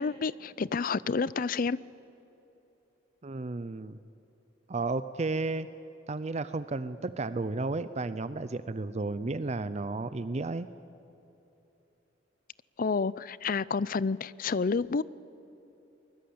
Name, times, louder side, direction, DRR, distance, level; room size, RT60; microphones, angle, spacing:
voice 1, 0.0-1.8 12.8-15.0, left 4 dB, 50° left, 0.5 m, -29 dB
voice 2, 3.2-4.0 4.7-5.7 6.1-10.7, right 3 dB, 35° right, 0.5 m, -33 dB
23.5 x 21.5 x 8.6 m
head